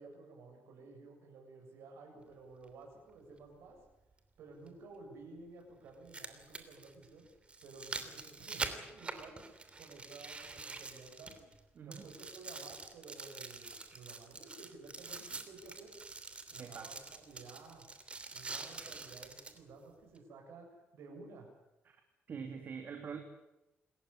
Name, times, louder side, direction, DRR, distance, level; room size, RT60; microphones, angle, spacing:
voice 1, 0.0-3.8 4.4-7.3 7.6-9.4 9.8-11.5 11.8-16.2 16.5-17.9 18.3-21.5, right 3 dB, 80° right, 2 dB, 7.4 m, -53 dB
sound 1, 2.6-2.7 4.7-4.8 5.9-11.6 11.9-19.6 20.2-20.3, right 3 dB, 25° right, 3.1 m, -45 dB
voice 2, 11.8-12.1 16.6-16.9 21.8-22.0 22.3-23.2, right 6 dB, 50° right, 4 dB, 3.1 m, -44 dB
27.5 x 14.5 x 10.0 m, 0.95 s
cardioid pair, 115°, 4 cm